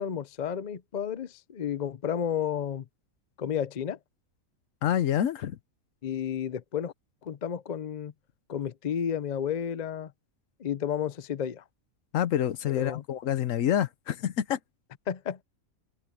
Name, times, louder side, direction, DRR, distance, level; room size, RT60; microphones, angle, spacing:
voice 1, 0.0-2.8 3.4-4.0 6.0-6.9 7.2-8.1 8.5-10.1 10.6-11.6 12.7-13.0 15.1-15.4, left 8 dB, 45° left, 0.6 m, -32 dB
voice 2, 4.8-5.6 12.1-14.6, left 10 dB, 70° left, 1.1 m, -27 dB
omnidirectional pair, 1.5 m